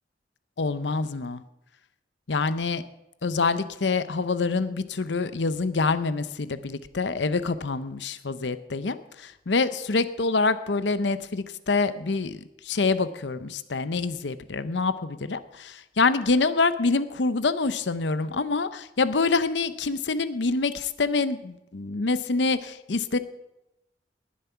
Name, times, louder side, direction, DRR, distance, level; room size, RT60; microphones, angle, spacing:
voice 1, 0.6-1.4 2.3-2.8 3.2-23.2, left 4 dB, 70° left, 13 dB, 0.7 m, -26 dB
20.0 x 7.6 x 5.7 m, 0.92 s
head